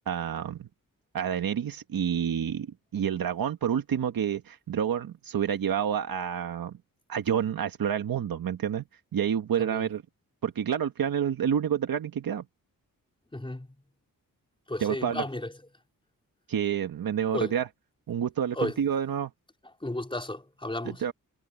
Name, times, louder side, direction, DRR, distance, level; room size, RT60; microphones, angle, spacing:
voice 1, 0.1-0.7 1.1-6.8 7.1-8.8 9.1-10.0 10.4-12.4 14.8-15.2 16.5-17.7 18.1-19.3 21.0-21.1, right 8 dB, 85° right, 1.5 m, -28 dB
voice 2, 13.3-13.7 14.7-15.5 17.3-17.5 18.5-18.8 19.8-21.0, left 1 dB, 15° left, 4.4 m, -33 dB
wide cardioid pair, 100°, 34 cm